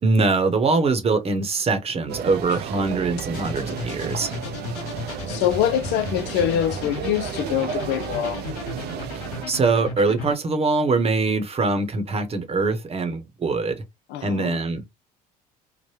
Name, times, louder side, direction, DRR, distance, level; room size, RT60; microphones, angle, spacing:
voice 1, 0.0-4.3 9.5-13.8 14.2-15.0, right 3 dB, 30° right, 0.9 m, -23 dB
sound 1, 2.1-9.5, right 8 dB, 55° right, 0.5 m, -33 dB
sound 2, 3.3-10.3, left 4 dB, 80° left, 1.0 m, -35 dB
voice 2, 5.3-8.4 14.1-14.6, left 10 dB, 60° left, 0.4 m, -24 dB
3.2 x 2.1 x 3.1 m
hypercardioid pair, 75°, 20 cm